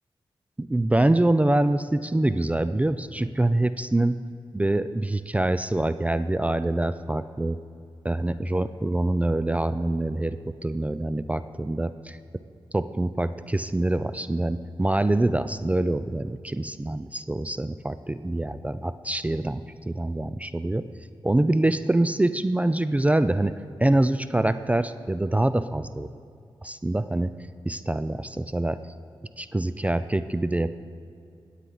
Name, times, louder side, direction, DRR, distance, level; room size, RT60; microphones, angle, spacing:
voice 1, 0.6-4.2 4.5-7.6 8.0-12.2 12.7-20.9 21.2-26.1 26.6-27.3 27.6-28.8 29.4-30.7, right 1 dB, 15° right, 13 dB, 0.3 m, -25 dB
16.5 x 8.2 x 3.9 m, 2.5 s
cardioid pair, 60°, 9 cm